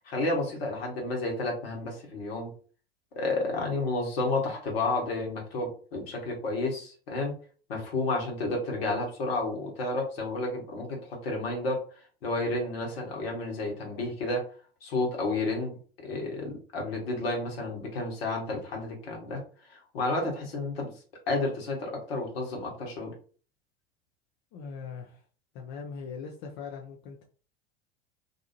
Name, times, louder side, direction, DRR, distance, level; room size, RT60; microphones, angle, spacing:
voice 1, 0.0-2.5 3.1-7.3 7.7-11.8 12.2-14.4 14.8-15.7 16.0-19.4 19.7-20.9 21.3-23.1, left 2 dB, 65° left, 0 dB, 1.3 m, -31 dB
voice 2, 24.5-25.2 25.5-27.2, left 5 dB, 40° left, 1 dB, 0.6 m, -40 dB
2.7 x 2.3 x 2.9 m, 0.40 s
figure-of-eight pair, 80°, 32 cm